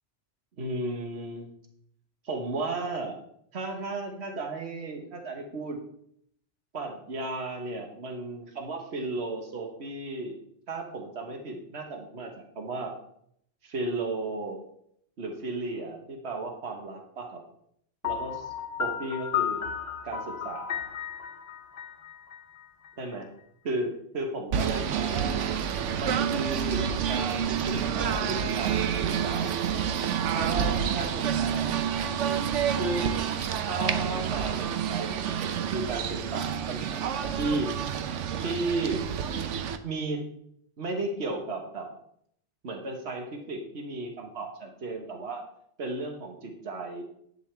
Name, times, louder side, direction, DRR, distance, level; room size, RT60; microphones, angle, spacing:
voice 1, 0.6-1.5 2.2-3.1 3.5-5.8 6.7-10.3 10.7-12.9 13.6-14.6 15.2-17.4 18.0-18.5 18.8-19.6 20.0-20.8 23.0-23.3 23.6-25.5 26.0-29.7 30.3-31.8 32.8-33.2 33.7-37.7 38.4-39.0 39.8-40.2 40.8-41.9 42.6-45.4 45.8-47.0, right 2 dB, 65° right, 3 dB, 1.6 m, -34 dB
Piano, 18.0-22.9, left 8 dB, 60° left, 1.1 m, -33 dB
Singing / Bird, 24.5-39.8, right 8 dB, 90° right, 1.0 m, -28 dB
11.0 x 8.4 x 3.4 m, 0.70 s
omnidirectional pair, 1.2 m